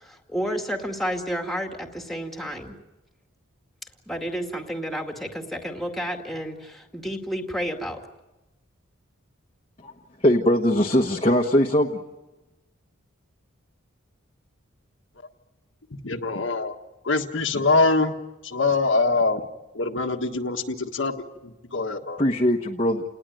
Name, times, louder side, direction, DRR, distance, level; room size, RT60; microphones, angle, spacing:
voice 1, 0.0-2.8 4.1-8.0, equal, ahead, 3 dB, 2.2 m, -31 dB
voice 2, 10.2-12.0 22.2-23.0, equal, 25° left, 0 dB, 1.3 m, -21 dB
voice 3, 15.9-16.7 17.0-18.2 18.4-19.4 19.7-22.2, left 3 dB, 60° left, 4 dB, 1.5 m, -24 dB
29.0 x 19.5 x 9.2 m, 1.0 s
head